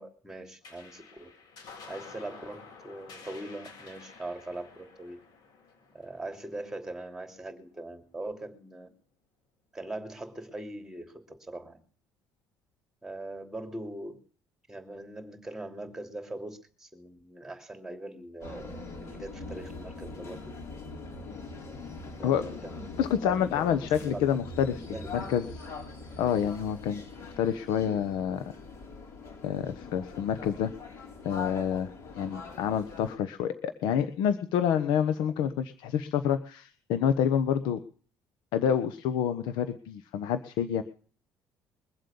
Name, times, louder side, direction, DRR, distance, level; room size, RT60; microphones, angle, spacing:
voice 1, 0.0-1.3 1.9-5.2 5.9-8.9 9.7-11.8 13.0-14.2 14.7-20.5 22.2-22.9 23.2-24.2 24.9-25.3, right 2 dB, 5° right, 5 dB, 3.0 m, -41 dB
sound 1, 0.6-7.4, left 4 dB, 65° left, 7.4 m, -51 dB
sound 2, 18.4-33.2, left 3 dB, 45° left, 4.8 m, -42 dB
voice 2, 23.0-24.8 25.1-25.7 26.2-27.0 27.4-28.5 29.4-30.7 31.2-37.8 38.5-40.8, left 8 dB, 85° left, 11 dB, 1.1 m, -28 dB
22.5 x 7.8 x 7.1 m, 0.44 s
cardioid pair, 155°, 7 cm